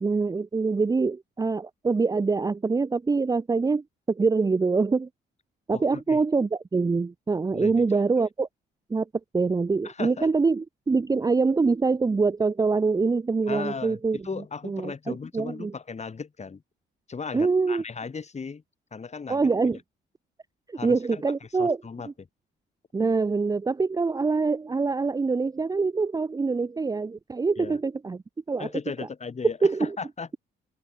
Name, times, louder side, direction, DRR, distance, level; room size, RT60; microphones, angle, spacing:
voice 1, 0.0-5.1 5.7-8.5 8.9-9.1 9.3-14.2 14.6-15.7 17.3-17.8 19.3-19.8 20.7-21.8 22.9-28.2 28.5-28.7 29.6-30.0, right 4 dB, 20° right, 0.6 m, -24 dB
voice 2, 5.7-6.2 7.5-7.8 9.8-10.3 13.5-16.6 17.1-18.6 18.9-19.4 20.7-21.2 21.6-22.3 27.6-27.8 28.6-30.4, left 5 dB, 35° left, 3.8 m, -36 dB
cardioid pair, 90°, 20 cm